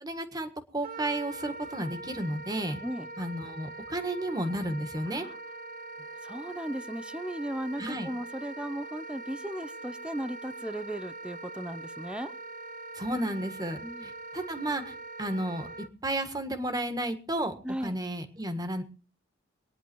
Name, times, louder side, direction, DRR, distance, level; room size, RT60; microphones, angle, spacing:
voice 1, 0.0-2.8 3.2-5.3 7.8-8.1 12.9-15.7 16.0-17.5 17.8-18.8, right 1 dB, 20° right, 8 dB, 1.7 m, -32 dB
Wind instrument woodwind instrument, 0.8-15.9, right 2 dB, 50° right, 1.1 m, -42 dB
voice 2, 6.2-12.3 13.8-14.1 17.6-17.9, right 1 dB, 5° right, 13 dB, 0.7 m, -36 dB
24.0 x 10.0 x 4.5 m, 0.37 s
head